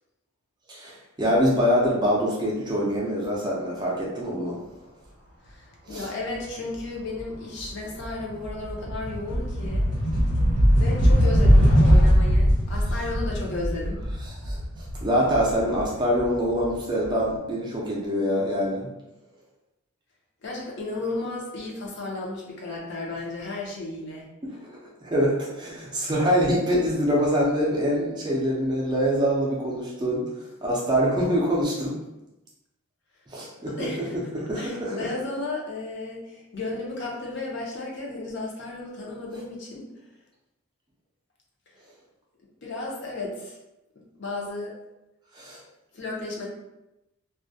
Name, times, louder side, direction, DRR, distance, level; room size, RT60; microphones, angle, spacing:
voice 1, 0.7-4.6 5.9-6.1 14.4-18.9 24.4-30.2 30.6-32.0 33.3-33.9 34.3-35.1 45.3-45.6, equal, 20° right, -4 dB, 0.4 m, -25 dB
voice 2, 5.5-9.9 10.8-14.0 20.4-24.3 33.7-34.1 34.6-39.9 42.6-43.6 44.0-44.8 45.9-46.5, left 2 dB, 55° left, -3 dB, 0.6 m, -34 dB
sound 1, 7.1-7.4 7.7-16.6, equal, 70° left, 1.1 m, -21 dB
2.3 x 2.1 x 2.6 m, 0.94 s
head